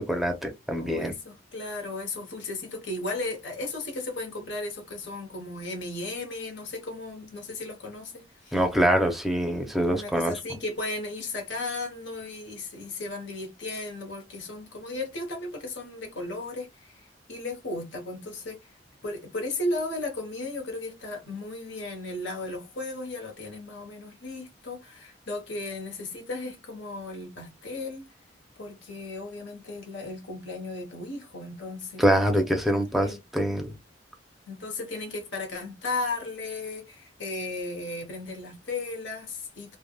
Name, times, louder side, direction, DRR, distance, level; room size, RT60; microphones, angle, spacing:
voice 1, 0.0-1.2 8.5-10.3 32.0-33.7, equal, ahead, 0.6 m, -24 dB
voice 2, 0.7-8.6 9.9-18.6 19.0-28.1 28.6-32.5 32.7-33.2 34.5-39.8, left 2 dB, 80° left, 1.0 m, -35 dB
3.3 x 2.1 x 2.2 m
head